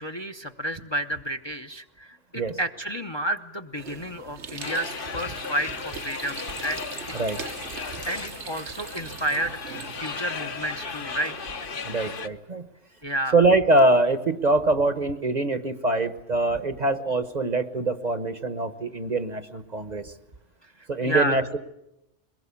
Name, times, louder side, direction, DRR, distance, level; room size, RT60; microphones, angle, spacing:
voice 1, 0.0-6.8 8.0-11.3 13.0-13.4 21.0-21.4, right 1 dB, 25° left, 5 dB, 0.8 m, -31 dB
sound 1, 3.8-12.2, right 6 dB, 70° right, 1.4 m, -41 dB
sound 2, 4.6-12.3, left 5 dB, 50° left, 1.2 m, -36 dB
voice 2, 11.8-12.7 13.3-20.1 20.9-21.6, right 2 dB, 40° right, 10 dB, 1.1 m, -23 dB
22.5 x 20.5 x 8.4 m, 0.90 s
omnidirectional pair, 1.2 m